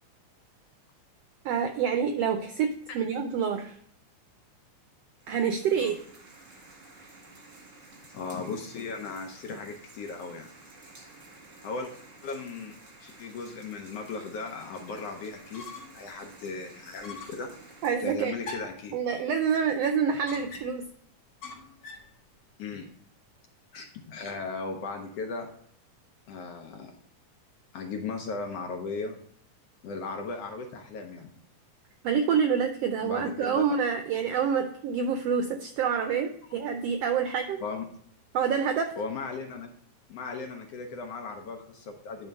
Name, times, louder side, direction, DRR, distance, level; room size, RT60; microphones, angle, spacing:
voice 1, 1.4-3.8 5.3-5.9 17.8-18.3 18.9-20.9 32.0-37.6 38.3-38.9, right 7 dB, 80° right, 6 dB, 1.4 m, -27 dB
sound 1, 5.2-17.9, right 2 dB, 35° right, 1.3 m, -52 dB
voice 2, 8.1-10.5 11.6-11.9 12.2-15.7 15.9-17.5 18.0-19.0 22.6-22.9 23.7-25.5 26.3-26.9 27.7-29.2 29.8-31.3 33.0-33.6 37.6-37.9 39.0-39.7 40.1-42.3, left 4 dB, 70° left, 3 dB, 1.6 m, -37 dB
sound 2, 15.3-16.1 16.4-16.5 17.0-17.5 18.4-18.9 20.3-20.9 21.4-22.1, left 4 dB, 45° left, 2.2 m, -43 dB
11.0 x 3.7 x 5.1 m, 0.66 s
omnidirectional pair, 3.5 m